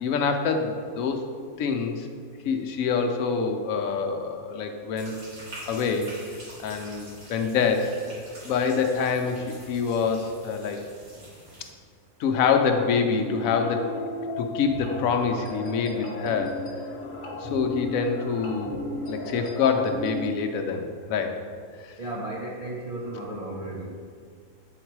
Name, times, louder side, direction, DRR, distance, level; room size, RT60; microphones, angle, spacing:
voice 1, 0.0-1.2 1.6-2.1 2.4-5.1 5.7-6.1 6.6-7.9 8.4-10.8 12.2-13.9 14.4-16.6 17.3-18.8 19.1-21.4 21.8-22.0, left 5 dB, 75° left, 4 dB, 1.1 m, -26 dB
sound 1, 5.0-11.7, right 1 dB, 90° right, 2.3 m, -46 dB
sound 2, 13.2-20.3, left 1 dB, 50° left, 1.3 m, -35 dB
voice 2, 22.0-23.9, right 1 dB, 40° right, -3 dB, 0.5 m, -34 dB
7.9 x 4.0 x 4.6 m, 2.1 s
omnidirectional pair, 1.5 m